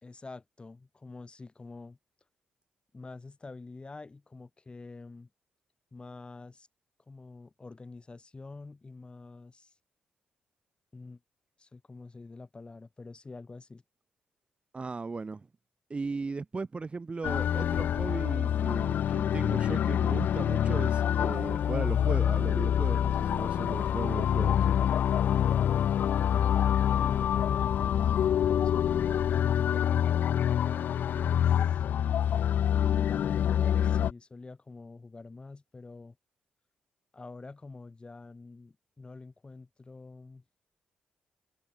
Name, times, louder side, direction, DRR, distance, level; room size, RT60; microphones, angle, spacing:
voice 1, 0.0-2.0 2.9-5.3 5.9-6.7 7.1-9.7 10.9-11.2 11.6-13.8 26.2-28.2 28.5-30.2 30.7-31.8 32.8-36.2 37.1-40.4, left 3 dB, 30° left, 5.3 m, -46 dB
voice 2, 14.7-15.5 15.9-24.7, right 4 dB, 35° right, 1.6 m, -37 dB
sound 1, 17.2-34.1, left 9 dB, 70° left, 0.8 m, -26 dB
supercardioid pair, 50°, 3 cm